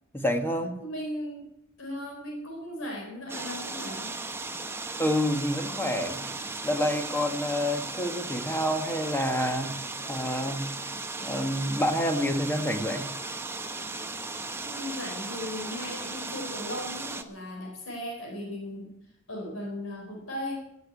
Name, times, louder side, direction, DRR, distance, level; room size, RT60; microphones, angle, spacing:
voice 1, 0.1-0.8 5.0-6.2 6.6-9.8 10.1-10.7 11.2-13.1, equal, 10° left, 6 dB, 1.7 m, -28 dB
voice 2, 0.8-1.5 1.8-4.2 14.6-18.9 19.3-20.6, left 1 dB, 80° left, 0 dB, 4.1 m, -37 dB
sound 1, 3.3-17.2, right 3 dB, 10° right, 1.0 m, -36 dB
15.5 x 8.4 x 9.0 m, 0.81 s
head